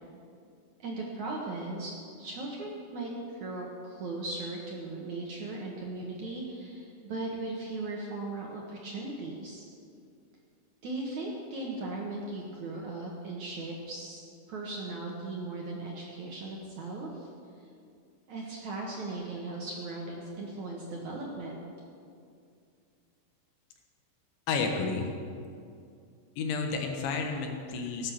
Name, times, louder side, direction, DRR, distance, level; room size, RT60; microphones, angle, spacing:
voice 1, 0.8-9.6 10.8-14.2 14.5-17.3 17.6-17.7 18.3-21.6, right 2 dB, 65° right, -2 dB, 1.9 m, -38 dB
voice 2, 24.5-25.1 26.4-28.1, left 4 dB, 75° left, 3 dB, 3.6 m, -31 dB
17.5 x 9.0 x 7.1 m, 2.4 s
omnidirectional pair, 5.5 m